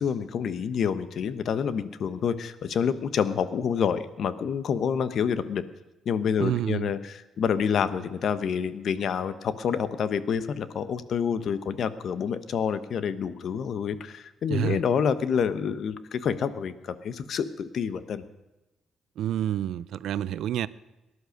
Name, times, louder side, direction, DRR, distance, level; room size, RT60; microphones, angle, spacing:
voice 1, 0.0-5.6 6.0-18.2, left 7 dB, 60° left, 13 dB, 1.0 m, -28 dB
voice 2, 6.4-6.9 14.5-14.8 19.2-20.7, right 11 dB, 75° right, 18 dB, 0.5 m, -28 dB
18.5 x 11.5 x 6.5 m, 1.0 s
cardioid pair, 90°, 0 cm